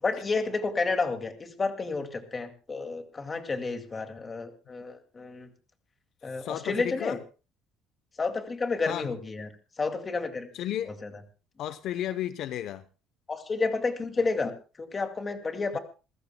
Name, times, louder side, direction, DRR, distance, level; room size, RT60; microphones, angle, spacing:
voice 1, 0.0-5.5 6.2-7.2 8.2-9.5 9.8-10.5 10.9-11.1 13.3-14.5 14.8-15.8, left 4 dB, 25° left, 2.2 m, -30 dB
voice 2, 6.3-7.2 8.9-9.1 10.5-10.9 11.6-12.9 15.7-15.8, left 12 dB, 60° left, 0.7 m, -33 dB
27.5 x 15.0 x 2.2 m
cardioid pair, 135°, 0 cm